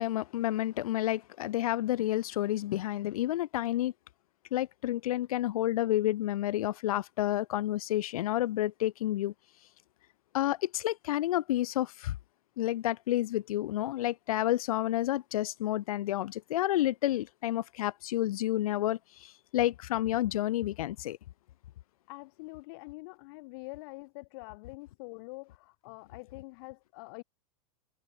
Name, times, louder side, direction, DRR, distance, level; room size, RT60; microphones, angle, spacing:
voice 1, 0.0-3.9 4.5-9.3 10.3-12.2 12.6-21.2, left 14 dB, 70° left, 1.5 m, -30 dB
voice 2, 22.1-27.2, left 27 dB, 40° left, 7.2 m, -45 dB
supercardioid pair, 170°, 19 cm